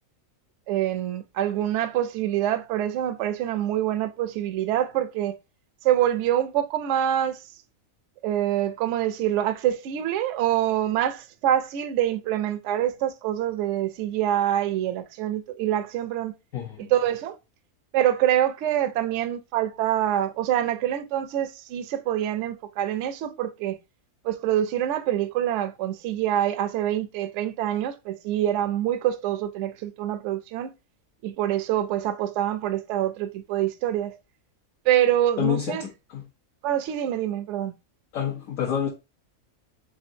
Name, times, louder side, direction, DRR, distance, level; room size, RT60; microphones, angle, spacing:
voice 1, 0.7-5.3 5.8-7.4 8.2-16.3 16.8-17.3 17.9-23.8 24.2-30.7 31.2-34.2 34.9-35.9 36.6-37.7, right 11 dB, 65° right, 0.8 m, -25 dB
voice 2, 16.5-16.9 35.4-36.2 38.1-38.9, left 9 dB, 70° left, 1.3 m, -28 dB
3.7 x 3.6 x 2.6 m
omnidirectional pair, 1.5 m